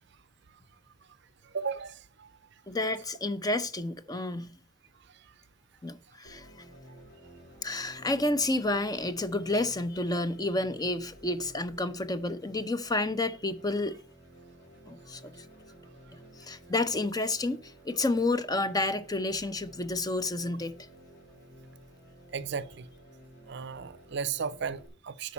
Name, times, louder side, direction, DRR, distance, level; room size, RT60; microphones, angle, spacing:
voice 1, 1.4-2.3 22.3-22.9 23.5-25.3, right 6 dB, 60° right, 0.5 m, -35 dB
voice 2, 2.7-4.5 5.8-6.5 7.6-14.0 14.9-15.2 16.1-20.8, left 2 dB, 20° left, 0.6 m, -30 dB
sound 1, 6.2-24.9, right 1 dB, 60° left, 4.0 m, -53 dB
8.3 x 5.3 x 7.1 m
head